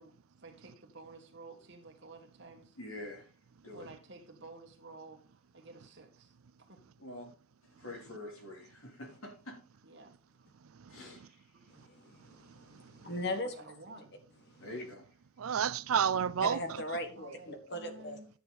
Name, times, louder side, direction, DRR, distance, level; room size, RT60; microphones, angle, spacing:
voice 1, 0.0-2.8 3.7-6.8 9.8-10.4 11.5-11.6 13.3-14.1 17.2-18.3, right 3 dB, 55° right, 1.8 m, -52 dB
voice 2, 2.7-3.3 3.6-3.9 7.0-7.3 7.6-9.6 10.9-11.5 14.6-15.1, left 1 dB, 80° left, 3.3 m, -46 dB
voice 3, 11.7-13.5 16.4-18.2, left 1 dB, 50° left, 1.7 m, -39 dB
voice 4, 12.5-12.9 15.4-16.8, right 8 dB, 80° right, 0.4 m, -31 dB
10.0 x 6.7 x 4.2 m
head